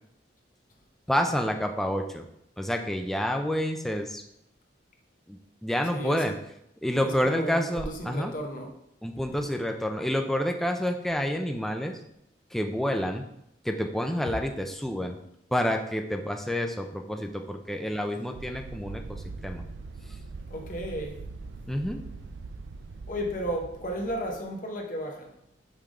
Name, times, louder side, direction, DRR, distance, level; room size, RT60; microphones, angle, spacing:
voice 1, 1.1-2.2 2.6-4.2 5.3-6.3 6.8-8.3 9.0-12.0 12.5-13.2 13.6-15.2 15.5-19.0 19.4-19.6 21.7-22.0, equal, ahead, 4 dB, 0.4 m, -28 dB
voice 2, 5.9-6.2 7.0-8.7 20.5-21.2 23.1-25.3, equal, 45° left, 2 dB, 1.0 m, -33 dB
sound 1, 18.3-24.4, right 3 dB, 80° right, 0.4 m, -42 dB
5.7 x 3.4 x 5.0 m, 0.77 s
head